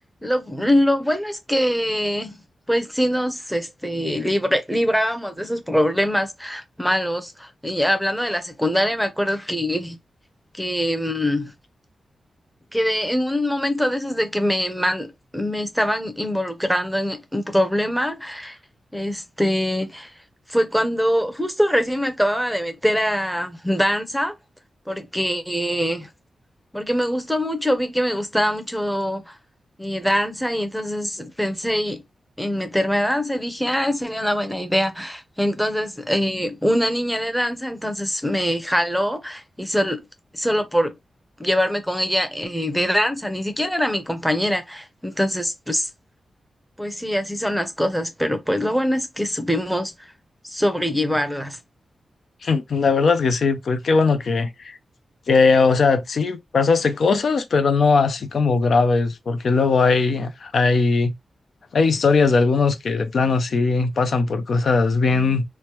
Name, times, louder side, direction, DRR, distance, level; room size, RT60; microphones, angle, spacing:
voice 1, 0.2-2.3 2.7-10.0 10.5-11.5 12.7-18.6 18.9-20.1 20.5-24.3 24.9-26.1 26.7-29.3 29.8-32.0 32.4-40.0 40.3-40.9 41.4-45.9 46.8-49.9 50.4-51.6, equal, ahead, 0.6 m, -23 dB
voice 2, 52.4-54.8 55.3-61.1 61.7-65.4, left 4 dB, 65° left, 0.5 m, -19 dB
3.1 x 2.1 x 2.9 m
cardioid pair, 85°, 0 cm